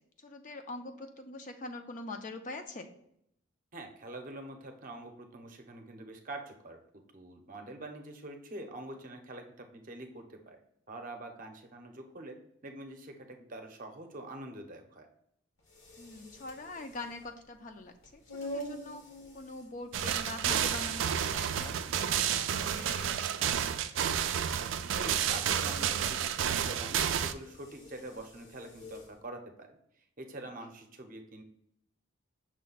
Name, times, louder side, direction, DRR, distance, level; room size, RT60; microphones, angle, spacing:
voice 1, 0.2-2.9 7.6-7.7 16.0-19.0 19.3-23.1 23.4-24.1, left 2 dB, 40° left, 6 dB, 0.4 m, -44 dB
voice 2, 3.7-6.8 7.1-10.6 10.9-12.4 12.6-15.1 25.0-29.8 30.2-31.4, right 2 dB, 40° right, 4 dB, 0.6 m, -45 dB
sound 1, 15.6-29.2, equal, 75° left, 1.2 m, -48 dB
sound 2, 19.9-27.3, right 9 dB, 65° right, 0.3 m, -30 dB
6.1 x 2.2 x 3.9 m, 0.72 s
head